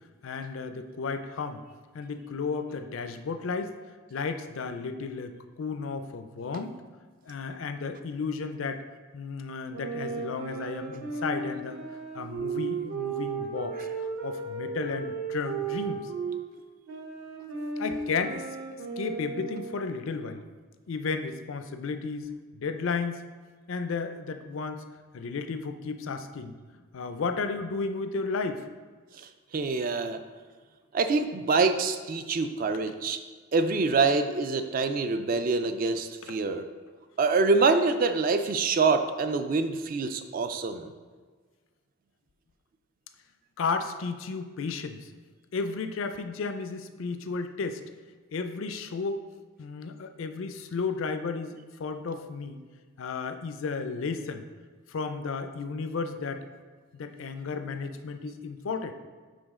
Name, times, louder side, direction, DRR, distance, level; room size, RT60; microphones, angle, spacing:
voice 1, 0.2-1.6 1.9-3.7 4.1-6.8 7.2-8.8 9.1-11.8 12.1-16.1 17.8-18.5 19.0-20.4 20.9-23.2 23.7-24.8 25.1-26.5 26.9-28.7 32.7-33.0 43.6-45.1 45.5-47.8 48.3-49.2 49.6-52.6 53.0-54.4 54.9-56.5 56.9-58.9, left 4 dB, 65° left, 9 dB, 0.4 m, -33 dB
sound 1, 9.7-16.4 16.9-19.8, right 4 dB, 65° right, 1.0 m, -35 dB
voice 2, 29.5-30.2 30.9-33.2 33.5-36.7 37.2-40.9, right 4 dB, 40° right, 9 dB, 0.3 m, -25 dB
5.6 x 5.1 x 3.6 m, 1.5 s
head